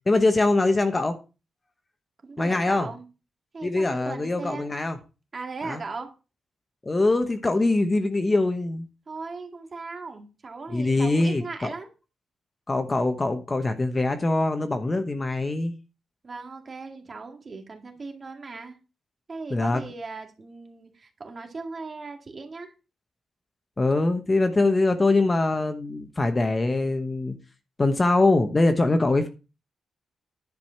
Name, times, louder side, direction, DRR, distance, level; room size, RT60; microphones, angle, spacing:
voice 1, 0.1-1.1 2.4-2.9 3.6-5.0 5.6-5.8 6.8-8.9 10.7-11.7 12.7-15.8 19.5-19.8 23.8-27.3 27.8-29.3, left 2 dB, 20° left, 8 dB, 1.0 m, -23 dB
voice 2, 2.2-3.0 3.5-4.7 5.3-6.1 9.1-11.9 16.2-18.8 19.3-22.7, right 4 dB, 35° right, 4 dB, 2.0 m, -38 dB
10.5 x 4.9 x 5.7 m, 0.31 s
wide cardioid pair, 140°, 0 cm